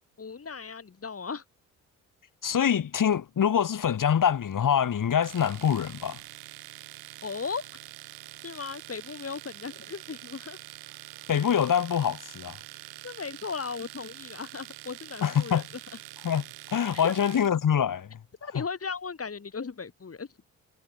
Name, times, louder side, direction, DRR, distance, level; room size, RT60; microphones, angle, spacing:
voice 1, 0.2-1.4 7.2-7.7 8.4-10.6 13.0-15.6 17.0-17.1 18.4-20.3, left 5 dB, 40° left, 5.1 m, -36 dB
voice 2, 2.4-6.2 11.3-12.6 15.2-15.7 16.2-16.4 16.7-18.2 18.5-18.6, left 8 dB, 55° left, 6.1 m, -25 dB
Domestic sounds home sounds, 5.2-17.6, right 20 dB, 80° right, 6.4 m, -45 dB
hypercardioid pair, 45°, 37 cm